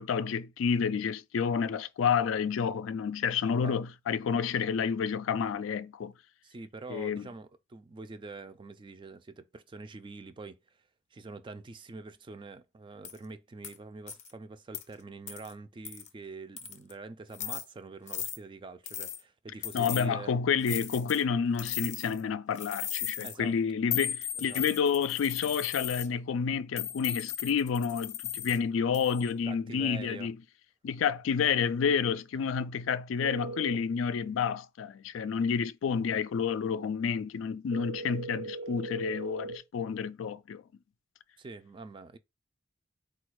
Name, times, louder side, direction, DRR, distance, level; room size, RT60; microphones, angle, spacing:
voice 1, 0.0-6.1 6.9-7.3 19.7-30.4 30.8-40.6, left 6 dB, 75° left, 0.3 m, -29 dB
voice 2, 3.4-3.8 6.4-10.8 11.1-20.3 23.2-23.5 24.4-24.6 29.5-30.3 41.4-42.2, right 3 dB, 25° right, 0.4 m, -45 dB
sound 1, 13.0-13.2 13.6-13.8 14.1-14.3 14.7-14.8 15.3-15.5 15.9-16.1 16.6-16.9 17.3-17.6 18.1-18.4 18.9-19.2 19.6-20.1 20.6-21.2 21.6-22.2 22.6-23.4 23.9-26.1 26.8-28.6 28.9-29.3, left 11 dB, 35° left, 0.6 m, -36 dB
sound 2, 33.2-33.8 37.7-39.6, right 2 dB, 80° right, 0.7 m, -39 dB
4.2 x 2.3 x 4.6 m
head